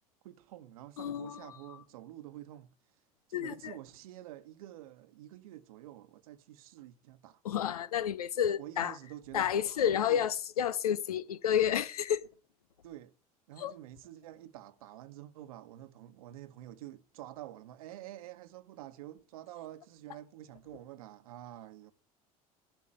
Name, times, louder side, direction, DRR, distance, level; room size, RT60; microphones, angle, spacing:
voice 1, 0.2-2.7 3.3-7.4 8.6-9.8 10.1-10.3 12.8-13.1 13.5-21.9, right 14 dB, 70° right, 1.2 m, -48 dB
voice 2, 1.0-1.5 3.3-3.7 7.4-8.9 9.3-12.3 13.6-13.7, left 9 dB, 80° left, 0.8 m, -30 dB
13.5 x 6.0 x 7.5 m
hypercardioid pair, 70°, 19 cm